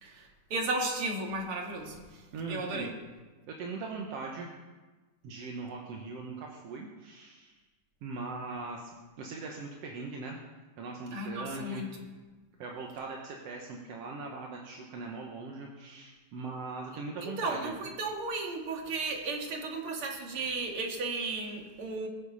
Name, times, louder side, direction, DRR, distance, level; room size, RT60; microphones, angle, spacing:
voice 1, 0.0-2.9 11.1-12.1 17.2-22.1, right 3 dB, 45° right, 1 dB, 2.3 m, -35 dB
voice 2, 2.3-2.9 3.5-4.5 5.2-7.5 8.0-8.9 9.2-10.4 10.8-11.8 12.6-17.7, right 3 dB, 65° right, 0 dB, 1.7 m, -40 dB
21.5 x 7.4 x 5.5 m, 1.3 s
omnidirectional pair, 4.1 m